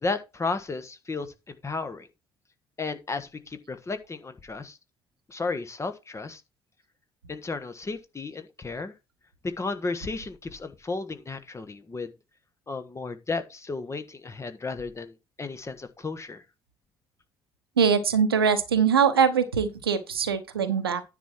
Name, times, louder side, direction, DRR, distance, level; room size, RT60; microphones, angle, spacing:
voice 1, 0.0-2.1 2.8-4.8 5.3-6.4 7.3-8.9 9.6-12.1 12.7-16.4, left 3 dB, 25° left, 1.2 m, -33 dB
voice 2, 17.8-21.0, right 6 dB, 80° right, 0.9 m, -22 dB
9.9 x 5.5 x 4.6 m
figure-of-eight pair, 50°, 12 cm